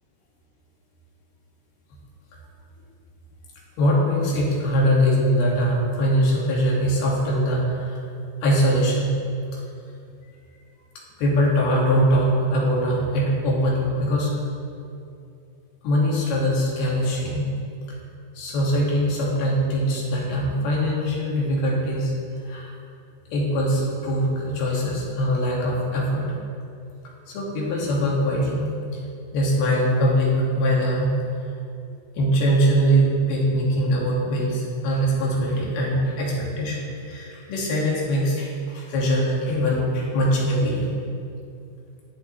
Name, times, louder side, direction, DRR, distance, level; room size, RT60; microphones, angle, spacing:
voice 1, 3.8-8.0 8.4-9.1 9.5-9.6 11.2-14.3 15.8-17.5 17.9-18.0 18.4-22.1 22.5-22.7 23.3-26.3 27.3-29.0 29.3-31.2 32.2-40.9, equal, 80° left, -4 dB, 3.9 m, -22 dB
19.5 x 7.2 x 3.2 m, 2.5 s
omnidirectional pair, 4.4 m